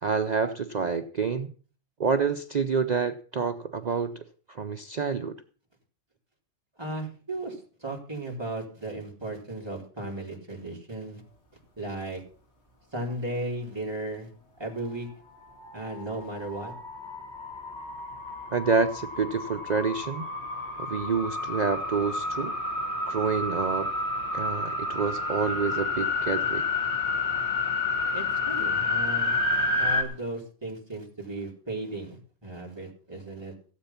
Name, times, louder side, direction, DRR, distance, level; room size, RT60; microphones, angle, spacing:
voice 1, 0.0-1.5 2.0-5.3 18.5-20.2 20.8-22.6 23.1-23.9 24.3-26.6, right 5 dB, 45° right, 8 dB, 0.6 m, -28 dB
voice 2, 6.8-11.2 11.8-12.2 12.9-14.3 14.6-15.1 15.7-16.7 28.1-29.4 29.7-33.5, right 2 dB, 20° right, -1 dB, 3.6 m, -35 dB
sound 1, 15.6-30.0, left 3 dB, 60° left, 2.7 m, -30 dB
16.0 x 8.1 x 5.7 m, 0.41 s
omnidirectional pair, 1.3 m